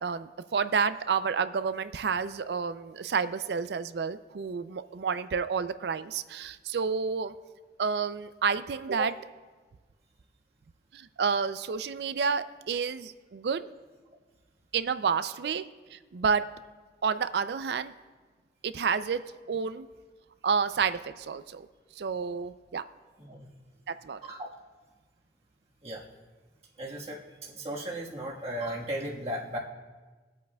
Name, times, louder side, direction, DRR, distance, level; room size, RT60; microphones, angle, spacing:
voice 1, 0.0-7.3 7.8-9.1 10.9-13.7 14.7-15.7 15.9-16.5 17.0-17.9 18.6-19.9 20.4-21.7 22.0-22.8 23.9-24.2, right 6 dB, 65° right, 13 dB, 0.4 m, -30 dB
voice 2, 26.8-29.6, right 1 dB, 35° right, -3 dB, 1.5 m, -36 dB
21.5 x 8.3 x 2.3 m, 1.3 s
head